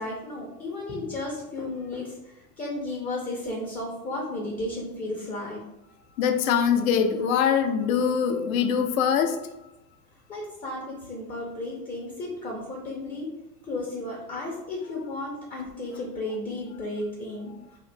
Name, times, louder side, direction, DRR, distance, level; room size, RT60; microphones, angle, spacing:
voice 1, 0.0-5.6 10.3-13.3 13.6-17.5, left 2 dB, 20° left, -2 dB, 0.6 m, -34 dB
voice 2, 6.2-9.4, left 7 dB, 60° left, 6 dB, 0.6 m, -23 dB
2.9 x 2.4 x 3.2 m, 0.94 s
hypercardioid pair, 90°, 48 cm